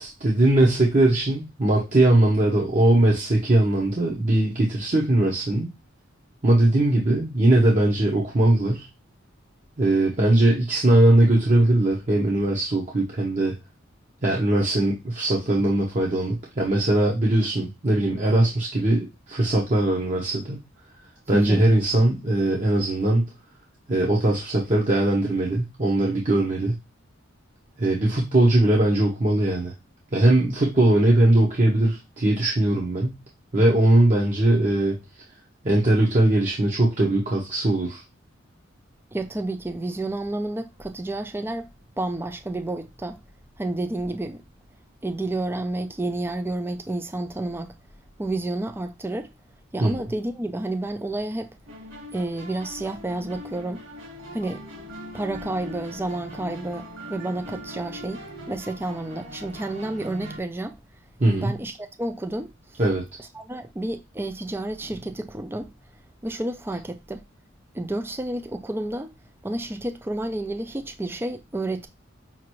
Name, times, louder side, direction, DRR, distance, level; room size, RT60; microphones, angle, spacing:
voice 1, 0.0-5.7 6.4-8.9 9.8-13.5 14.2-20.6 21.3-23.2 23.9-26.8 27.8-29.7 30.1-33.2 33.5-35.0 35.6-38.0 49.8-49.9 61.2-61.5 62.8-63.0, right 1 dB, 40° right, 0.9 m, -20 dB
voice 2, 21.3-21.6 39.1-41.7 42.0-43.2 43.6-44.4 45.0-47.7 48.2-49.3 49.7-51.6 52.1-53.8 54.3-54.6 55.1-60.8 61.3-62.8 63.3-65.7 66.2-67.2 67.7-69.1 69.4-71.9, right 2 dB, 10° right, 0.4 m, -30 dB
sound 1, 51.7-60.4, equal, 90° right, 1.8 m, -41 dB
5.8 x 2.5 x 3.0 m
head